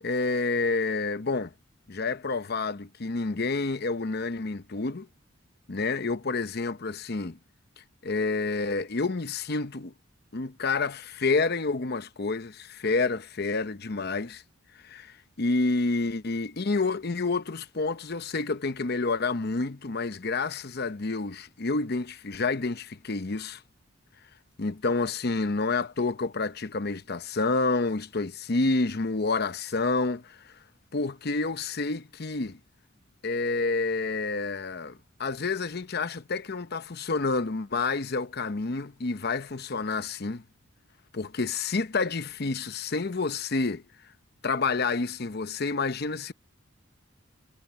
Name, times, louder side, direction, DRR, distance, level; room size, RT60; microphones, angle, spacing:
voice 1, 0.0-1.5 1.9-5.1 5.7-7.4 8.0-9.9 10.3-14.4 14.8-23.6 24.6-30.5 30.9-32.6 33.2-40.4 41.1-43.8 44.4-46.3, left 3 dB, 50° left, 0.8 m, -29 dB
head